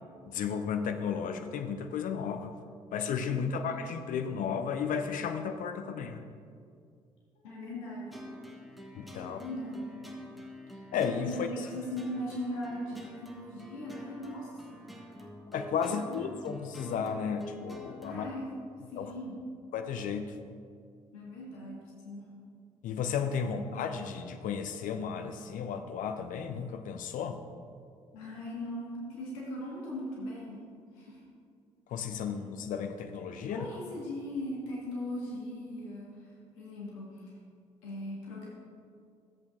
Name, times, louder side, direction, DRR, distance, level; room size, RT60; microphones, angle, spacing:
voice 1, 0.2-2.5 2.9-6.2 8.9-9.4 10.9-11.5 15.5-18.3 19.0-19.1 19.7-20.3 22.8-27.4 31.9-33.7, left 6 dB, 50° left, 8 dB, 0.7 m, -33 dB
voice 2, 3.3-3.7 7.4-8.2 9.2-9.9 10.7-10.8 11.2-14.8 15.9-16.2 18.0-18.5 18.9-19.4 21.1-22.3 23.4-23.6 28.1-30.6 30.9-31.2 33.4-36.1 36.6-37.3 37.8-38.5, left 1 dB, 70° left, -5 dB, 1.8 m, -39 dB
sound 1, 8.1-18.3, left 1 dB, ahead, 1.2 m, -48 dB
13.0 x 8.2 x 2.6 m, 2.3 s
figure-of-eight pair, 50°, 17 cm